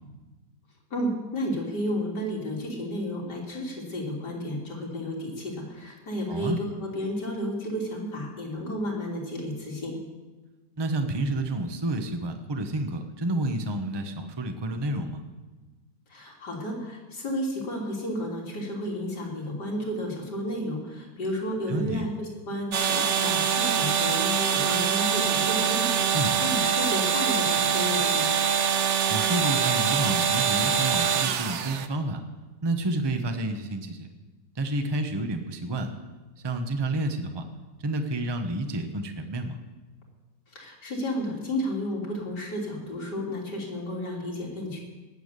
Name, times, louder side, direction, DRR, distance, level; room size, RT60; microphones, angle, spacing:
voice 1, 0.9-10.0 16.1-28.3 40.5-44.8, equal, 85° left, -2 dB, 3.9 m, -32 dB
voice 2, 10.8-15.2 21.7-22.0 26.1-26.3 29.1-32.2 32.6-34.1 34.6-35.9 36.4-37.4 37.8-39.6, right 2 dB, 20° right, 6 dB, 0.9 m, -29 dB
sound 1, 22.7-31.9, right 7 dB, 55° right, 0.9 m, -24 dB
18.0 x 7.1 x 8.2 m, 1.2 s
omnidirectional pair, 1.8 m